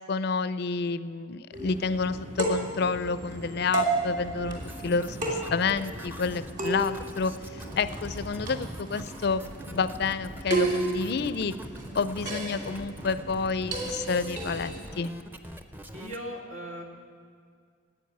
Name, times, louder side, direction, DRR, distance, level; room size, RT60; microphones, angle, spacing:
voice 1, 0.1-11.5 11.9-15.1, left 4 dB, 50° left, 14 dB, 0.4 m, -29 dB
sound 1, 1.5-14.8, right 2 dB, 40° right, 2.8 m, -33 dB
sound 2, 4.6-16.2, equal, 10° right, 0.5 m, -44 dB
voice 2, 15.9-16.8, equal, 85° right, 0 dB, 2.1 m, -38 dB
14.0 x 8.7 x 9.4 m, 2.1 s
head